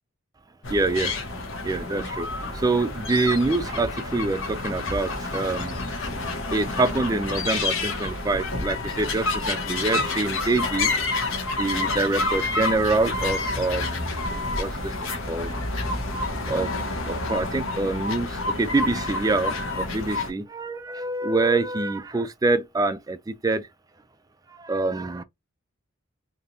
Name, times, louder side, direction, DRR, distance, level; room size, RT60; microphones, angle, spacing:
sound 1, 0.6-20.3, left 2 dB, 65° left, 1.0 m, -29 dB
voice 1, 0.7-1.1 1.6-5.8 6.5-10.9 11.6-14.2 14.6-15.5 16.5-16.7 17.1-23.7 24.6-25.2, right 3 dB, 15° right, 0.3 m, -26 dB
3.3 x 2.9 x 2.6 m
head